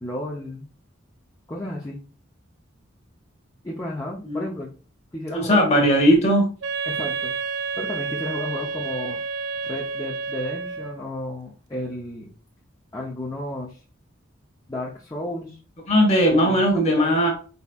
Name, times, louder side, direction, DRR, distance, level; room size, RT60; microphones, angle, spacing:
voice 1, 0.0-0.7 1.5-2.0 3.6-4.7 5.1-5.6 6.9-7.3 7.8-9.2 9.6-12.3 12.9-13.8 14.7-15.6 16.2-16.6 16.9-17.2, left 1 dB, 15° left, -3 dB, 0.6 m, -32 dB
voice 2, 5.3-6.5 15.9-17.3, equal, 35° left, 1 dB, 1.4 m, -18 dB
Wind instrument woodwind instrument, 6.6-11.1, right 5 dB, 65° right, 0.4 m, -30 dB
4.7 x 4.1 x 2.3 m, 0.37 s
head